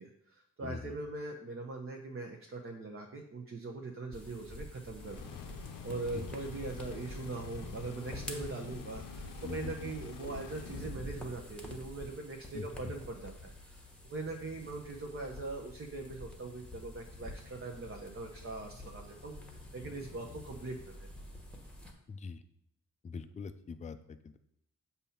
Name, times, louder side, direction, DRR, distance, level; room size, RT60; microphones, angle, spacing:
voice 1, 0.0-5.3 5.8-13.5 14.0-21.1, right 3 dB, 40° right, 2 dB, 0.7 m, -41 dB
voice 2, 0.6-0.9 6.1-6.3 9.4-9.8 12.5-12.9 20.0-20.1 22.1-22.4 23.0-24.4, left 5 dB, 25° left, 10 dB, 0.4 m, -43 dB
sound 1, 4.1-21.9, left 1 dB, 5° left, 1.1 m, -48 dB
sound 2, 4.9-11.0, left 7 dB, 80° left, 0.6 m, -48 dB
6.9 x 2.8 x 5.6 m, 0.75 s
cardioid pair, 90°, 33 cm